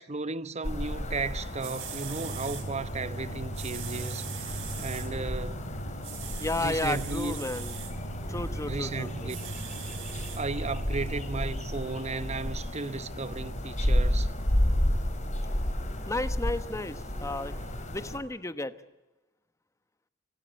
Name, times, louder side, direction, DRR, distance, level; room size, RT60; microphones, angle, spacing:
voice 1, 0.0-5.7 6.6-7.4 8.7-9.4 10.4-14.3, right 3 dB, 35° right, 0.9 m, -35 dB
sound 1, 0.6-18.2, left 1 dB, 40° left, 3.9 m, -32 dB
sound 2, 1.3-1.4 1.6-2.6 3.5-5.1 6.0-7.9 9.3-10.4 11.1-11.2, right 10 dB, 70° right, 4.4 m, -41 dB
sound 3, 2.1-11.1, right 2 dB, 70° left, 4.0 m, -41 dB
voice 2, 6.4-7.8 8.3-9.3 16.1-17.5 17.9-18.7, left 2 dB, 15° left, 1.1 m, -33 dB
26.5 x 17.5 x 9.0 m
head